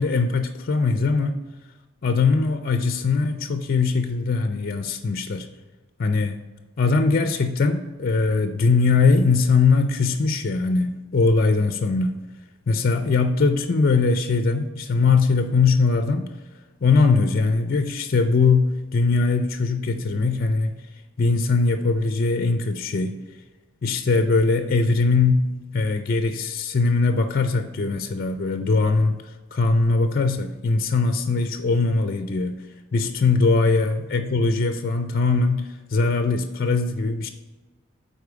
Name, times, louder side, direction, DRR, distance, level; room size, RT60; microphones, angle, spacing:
voice 1, 0.0-1.4 2.0-5.5 6.0-6.4 6.8-12.2 12.7-16.3 16.8-20.7 21.2-23.2 23.8-29.2 29.5-32.6 32.9-37.3, left 4 dB, 45° left, 8 dB, 0.4 m, -21 dB
8.3 x 4.3 x 4.7 m, 1.2 s
head